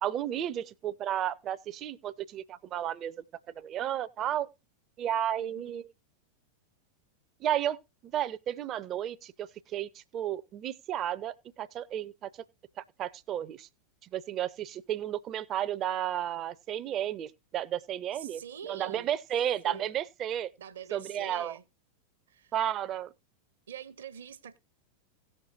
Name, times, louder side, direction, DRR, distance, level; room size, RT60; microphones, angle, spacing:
voice 1, 0.0-4.5 5.0-5.8 7.4-7.8 8.0-12.3 13.0-13.7 14.0-18.4 18.7-20.5 20.9-21.5 22.5-23.1, right 11 dB, 30° right, 0.6 m, -33 dB
voice 2, 5.4-5.8 18.1-19.2 19.6-20.0 20.6-21.6 22.3-22.6 23.7-24.6, right 8 dB, 65° right, 0.9 m, -45 dB
17.5 x 6.5 x 2.7 m
figure-of-eight pair, 90°, 0 cm